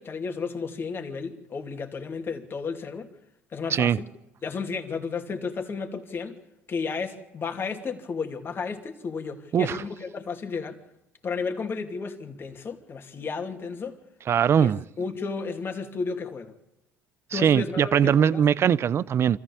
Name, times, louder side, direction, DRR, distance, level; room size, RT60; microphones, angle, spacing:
voice 1, 0.0-3.1 3.5-4.1 4.4-6.4 6.7-10.8 11.2-14.0 14.6-14.7 15.0-16.5 17.3-18.4, left 5 dB, 40° left, 2.6 m, -33 dB
voice 2, 14.3-14.8 17.3-19.4, right 8 dB, 45° right, 0.7 m, -21 dB
25.5 x 14.5 x 7.2 m
supercardioid pair, 80°, 6 cm